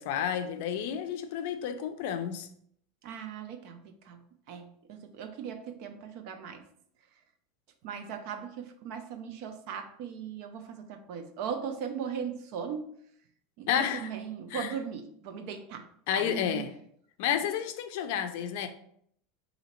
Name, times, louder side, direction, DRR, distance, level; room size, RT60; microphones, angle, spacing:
voice 1, 0.0-2.5 13.7-14.1 14.5-14.7 16.1-16.7 17.2-18.7, left 9 dB, 60° left, 0.5 m, -31 dB
voice 2, 3.0-3.8 4.1-4.2 4.5-6.6 7.8-12.9 13.6-15.9 16.1-16.6, right 7 dB, 50° right, 0.6 m, -38 dB
3.9 x 2.8 x 4.3 m
supercardioid pair, 160°, 0 cm